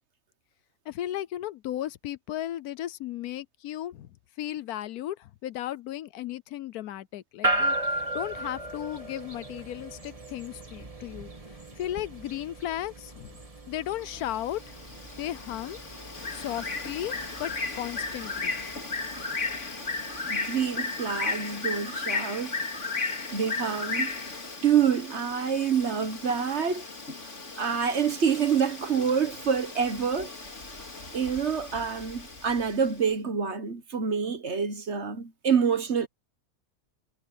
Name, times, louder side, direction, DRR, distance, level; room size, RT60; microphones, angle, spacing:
voice 1, 0.9-4.1 4.4-11.3 11.7-13.4 13.7-14.6 15.2-15.8 16.3-18.5, left 12 dB, 80° left, 1.2 m, -35 dB
sound 1, 7.4-21.7, right 1 dB, 25° right, 2.1 m, -36 dB
Bird, 14.2-32.9, left 3 dB, 50° left, 3.2 m, -35 dB
voice 2, 20.2-22.6 23.3-24.1 24.6-26.8 27.6-30.3 31.1-36.1, right 7 dB, 50° right, 1.5 m, -27 dB
omnidirectional pair, 1.6 m